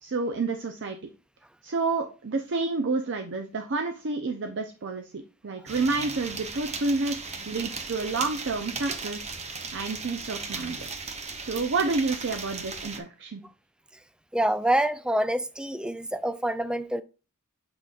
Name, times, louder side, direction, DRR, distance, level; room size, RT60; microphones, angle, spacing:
voice 1, 0.0-1.1 1.6-10.8 11.4-13.4, right 3 dB, 55° right, 0.6 m, -29 dB
sound 1, 5.7-13.0, right 4 dB, 30° right, 0.9 m, -36 dB
voice 2, 14.3-17.0, right 1 dB, 5° right, 0.3 m, -26 dB
6.9 x 5.9 x 2.4 m
head